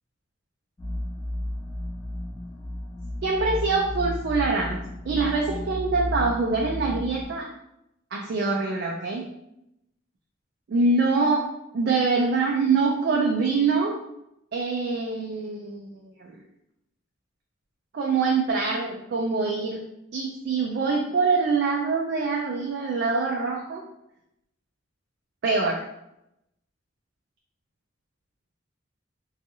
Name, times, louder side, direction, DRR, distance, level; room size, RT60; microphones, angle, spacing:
sound 1, 0.8-7.3, left 1 dB, 20° left, 0.4 m, -33 dB
voice 1, 3.2-7.5 8.1-9.2 10.7-11.5 11.7-14.0 14.5-16.4 17.9-19.8 20.1-23.8 25.4-25.8, right 4 dB, 55° right, -1 dB, 0.3 m, -24 dB
2.6 x 2.3 x 2.7 m, 0.84 s
head